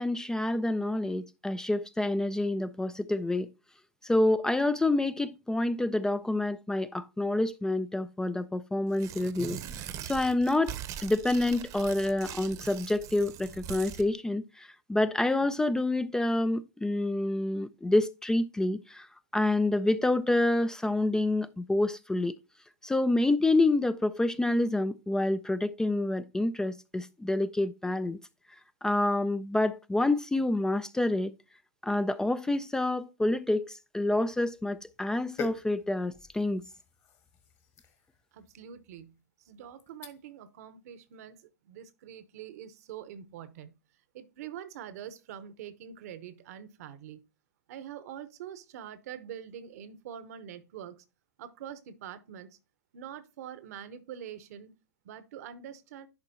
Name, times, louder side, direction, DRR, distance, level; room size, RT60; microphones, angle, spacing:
voice 1, 0.0-3.5 4.0-9.6 10.0-10.7 11.0-19.1 19.3-22.3 22.8-28.2 28.8-31.3 31.8-36.6, left 2 dB, 5° left, 0.3 m, -28 dB
Tearing, 8.9-14.1, right 10 dB, 40° right, 0.8 m, -42 dB
sound 1, 34.0-40.5 40.9-41.1, left 6 dB, 30° left, 1.4 m, -47 dB
voice 2, 38.3-43.7 44.1-47.2 47.7-51.0 51.4-52.6 52.9-54.7 55.0-56.1, right 9 dB, 65° right, 0.9 m, -45 dB
10.5 x 4.4 x 2.8 m
hypercardioid pair, 110°, 9 cm